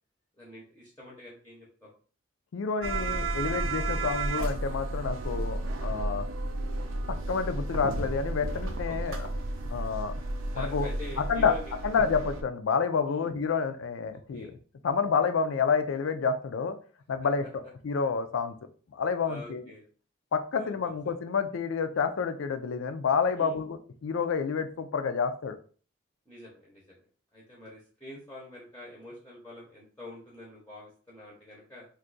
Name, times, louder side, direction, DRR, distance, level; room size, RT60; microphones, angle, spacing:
voice 1, 0.4-1.9 5.2-5.4 8.9-9.2 10.5-11.8 13.1-13.3 14.3-14.5 19.2-19.9 20.6-21.1 23.4-23.6 26.3-27.0 27.3-31.9, left 1 dB, 5° left, -5 dB, 0.7 m, -46 dB
voice 2, 2.5-6.3 7.3-9.3 9.7-10.2 10.6-10.9 11.2-11.6 11.8-14.5 14.8-16.8 17.1-17.4 17.8-18.5 18.9-19.6 20.3-25.6, left 5 dB, 75° left, 9 dB, 0.4 m, -29 dB
sound 1, 2.8-12.4, right 2 dB, 75° right, 0.5 m, -32 dB
2.6 x 2.4 x 3.8 m, 0.41 s
head